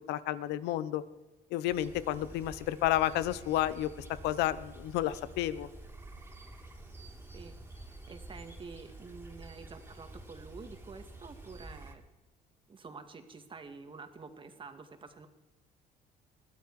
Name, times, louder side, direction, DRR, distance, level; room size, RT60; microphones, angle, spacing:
voice 1, 0.1-1.0 1.5-3.9 4.2-5.7, left 13 dB, 90° left, 15 dB, 0.9 m, -31 dB
sound 1, 1.7-11.9, right 2 dB, 15° right, 3.4 m, -49 dB
voice 2, 7.3-12.0 12.7-15.3, right 4 dB, 30° right, 7 dB, 2.1 m, -48 dB
21.5 x 13.5 x 4.9 m, 1.1 s
cardioid pair, 110°, 17 cm